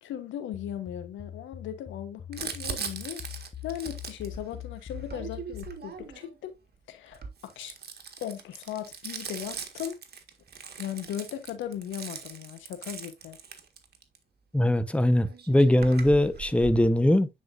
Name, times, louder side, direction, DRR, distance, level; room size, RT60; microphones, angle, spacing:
voice 1, 0.0-3.2 3.6-6.6 6.9-7.7 8.2-10.0 10.8-13.4, left 10 dB, 85° left, 1.2 m, -37 dB
sound 1, 0.5-5.8, left 10 dB, 40° left, 1.2 m, -43 dB
Crumpling crinkling, 2.3-6.4 7.1-14.2 15.0-15.1 15.3-16.9, right 6 dB, 55° right, 1.6 m, -40 dB
voice 2, 14.5-17.3, left 1 dB, 5° left, 1.1 m, -21 dB
9.3 x 4.8 x 2.6 m
supercardioid pair, 45°, 19 cm